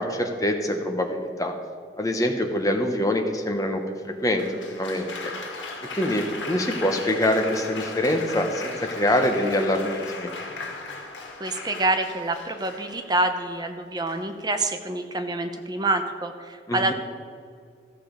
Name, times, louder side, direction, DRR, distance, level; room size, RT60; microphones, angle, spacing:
voice 1, 0.0-1.5 2.0-5.3 6.0-10.3 16.7-16.9, left 1 dB, 20° left, 4 dB, 1.0 m, -25 dB
Applause, 4.4-13.2 14.1-14.5, left 3 dB, 85° left, 1.8 m, -37 dB
voice 2, 11.4-16.9, right 2 dB, 20° right, 6 dB, 0.7 m, -26 dB
14.5 x 6.7 x 5.2 m, 2.2 s
head